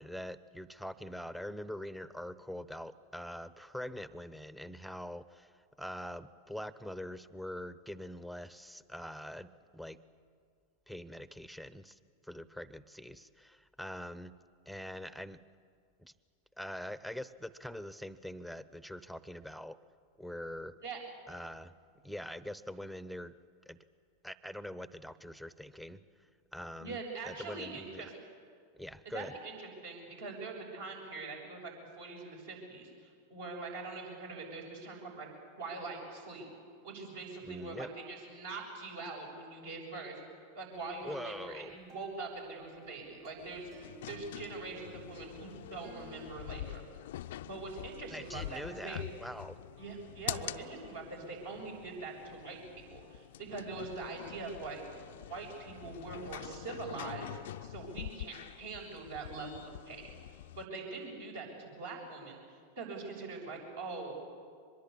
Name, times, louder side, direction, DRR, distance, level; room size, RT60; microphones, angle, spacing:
voice 1, 0.0-5.5 5.8-10.0 10.9-14.3 14.7-15.4 16.0-16.1 16.6-19.8 20.2-20.8 21.3-21.7 22.0-23.4 23.7-23.8 24.2-26.0 26.5-27.0 27.3-28.1 28.7-29.3 37.4-37.9 41.0-41.7 48.1-49.6, equal, ahead, 16 dB, 0.8 m, -44 dB
voice 2, 26.8-28.1 29.1-35.3 35.6-36.5 36.8-40.2 40.5-43.7 44.0-46.8 47.4-49.0 49.8-53.2 53.5-54.8 55.3-62.4 62.8-64.2, right 3 dB, 65° right, -1 dB, 7.1 m, -43 dB
sound 1, 40.7-46.3, right 5 dB, 45° right, 2.5 m, -56 dB
sound 2, 43.4-60.7, left 13 dB, 60° left, 0.5 m, -46 dB
24.0 x 22.0 x 8.6 m, 2.2 s
figure-of-eight pair, 90°, 0 cm